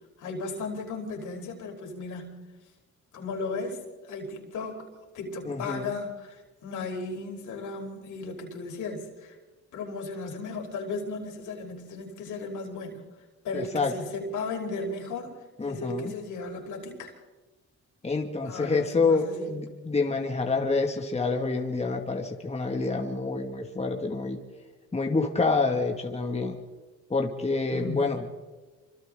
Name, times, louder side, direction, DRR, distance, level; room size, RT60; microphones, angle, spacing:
voice 1, 0.2-2.4 3.1-4.9 5.1-9.4 9.7-13.0 13.4-15.4 15.6-17.1 18.4-19.5 27.7-28.1, left 3 dB, 80° left, 1 dB, 5.1 m, -35 dB
voice 2, 5.5-5.9 13.5-13.9 15.6-16.1 18.0-24.4 24.9-26.6 27.1-28.3, left 3 dB, 20° left, 2 dB, 2.2 m, -27 dB
28.5 x 25.5 x 3.9 m, 1.3 s
cardioid pair, 90°, 30 cm